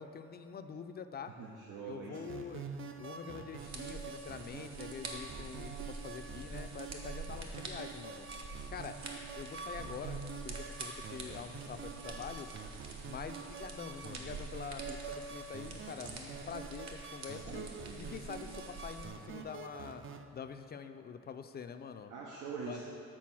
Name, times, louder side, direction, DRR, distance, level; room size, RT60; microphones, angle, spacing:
voice 1, 0.0-1.3 1.9-2.7 3.0-8.3 8.7-9.0 9.4-10.2 10.4-12.5 13.1-17.7 18.0-20.0 20.3-22.1 22.6-22.8, left 6 dB, 35° left, 9 dB, 0.4 m, -45 dB
voice 2, 1.4-2.3 17.4-18.1 22.1-22.8, right 5 dB, 85° right, -3 dB, 0.8 m, -44 dB
sound 1, 2.1-20.2, right 5 dB, 45° right, 0.5 m, -46 dB
sound 2, 3.6-19.1, right 3 dB, 60° right, 1.1 m, -47 dB
7.6 x 4.1 x 6.0 m, 3.0 s
cardioid pair, 90°, 30 cm